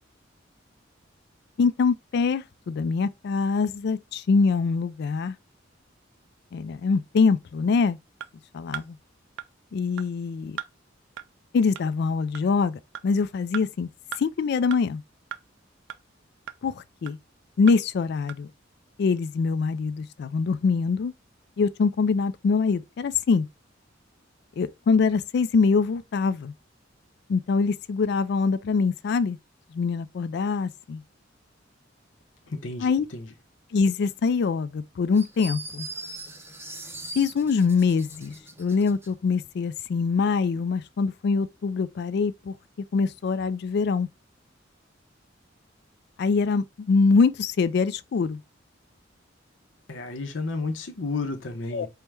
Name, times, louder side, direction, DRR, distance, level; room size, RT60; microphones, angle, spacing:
voice 1, 1.6-5.4 6.5-8.0 8.5-9.0 9.7-10.6 11.5-13.9 14.2-15.0 16.6-16.7 17.0-17.2 17.6-18.5 19.0-21.1 21.6-23.5 24.6-26.5 27.3-29.4 29.7-31.0 32.8-33.1 33.7-35.9 37.2-42.5 42.9-44.1 46.2-48.4 51.7-51.9, left 4 dB, 60° left, 0.3 m, -24 dB
sound 1, 8.2-8.3 8.7-8.9 9.4-9.5 10.0-10.1 10.6-10.7 11.2-11.3 11.8-11.9 12.3-12.5 12.9-13.1 13.5-13.6 14.1-14.2 14.7-14.8 15.3-15.4 15.9-16.0 16.5-16.6 17.1-17.2 17.7-17.8 18.3-18.4, right 10 dB, 75° right, 0.4 m, -36 dB
voice 2, 32.5-33.3 49.9-51.9, left 3 dB, 75° left, 0.7 m, -32 dB
sound 2, 35.1-39.1, right 2 dB, 10° right, 0.5 m, -40 dB
4.5 x 2.1 x 3.3 m
head